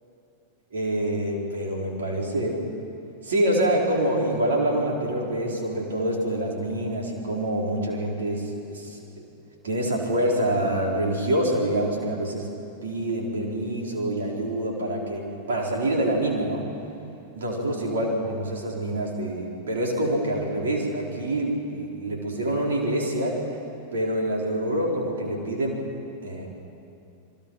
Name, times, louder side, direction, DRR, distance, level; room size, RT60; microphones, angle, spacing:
voice 1, 0.7-2.6 3.2-9.3 9.6-12.5 12.8-16.7 17.3-23.6 23.9-25.8 26.2-26.5, right 1 dB, 65° right, -1 dB, 4.7 m, -26 dB
29.5 x 23.0 x 5.8 m, 2.6 s
figure-of-eight pair, 90°, 0 cm